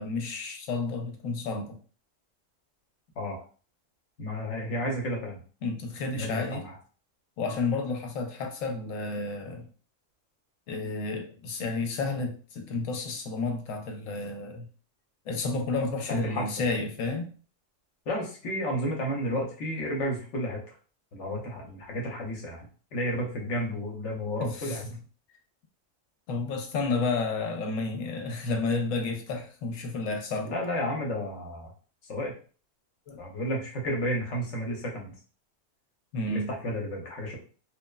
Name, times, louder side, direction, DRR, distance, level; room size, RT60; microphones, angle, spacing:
voice 1, 0.0-1.8 5.6-6.7 7.4-9.7 10.7-14.7 15.3-17.3 24.4-24.8 26.3-30.5 33.1-33.2 36.1-36.5, left 3 dB, 85° left, 3 dB, 1.0 m, -31 dB
voice 2, 4.2-5.4 6.1-6.8 16.1-16.5 18.1-20.6 21.1-24.8 30.5-31.7 32.1-32.3 33.2-35.1 36.3-37.4, equal, 70° left, 0 dB, 1.1 m, -32 dB
3.1 x 2.0 x 2.2 m, 0.39 s
omnidirectional pair, 1.3 m